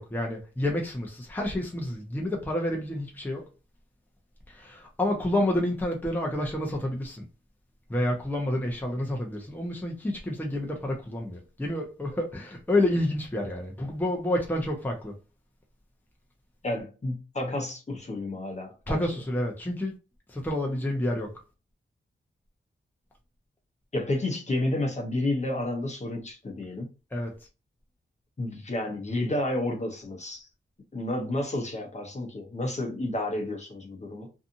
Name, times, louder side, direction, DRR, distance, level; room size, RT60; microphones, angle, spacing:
voice 1, 0.0-3.5 4.5-7.2 7.9-15.1 18.9-19.9 20.3-21.3 27.1-27.4, left 1 dB, 10° left, 0.7 m, -29 dB
voice 2, 16.6-19.2 23.9-26.9 28.4-30.5 30.9-34.3, left 1 dB, 35° left, 0.9 m, -31 dB
2.7 x 2.4 x 2.6 m
wide cardioid pair, 90°, 20 cm